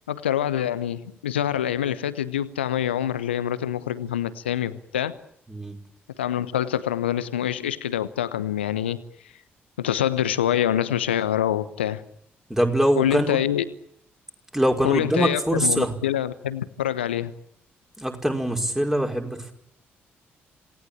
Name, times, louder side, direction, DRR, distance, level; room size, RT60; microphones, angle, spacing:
voice 1, 0.1-5.1 6.2-9.0 9.8-12.0 13.0-13.6 14.8-17.3, left 10 dB, 80° left, 15 dB, 1.0 m, -25 dB
voice 2, 12.5-13.4 14.5-15.9 18.0-19.5, right 1 dB, 5° right, 2 dB, 5.4 m, -23 dB
27.0 x 19.0 x 8.9 m, 0.74 s
figure-of-eight pair, 40°, 6 cm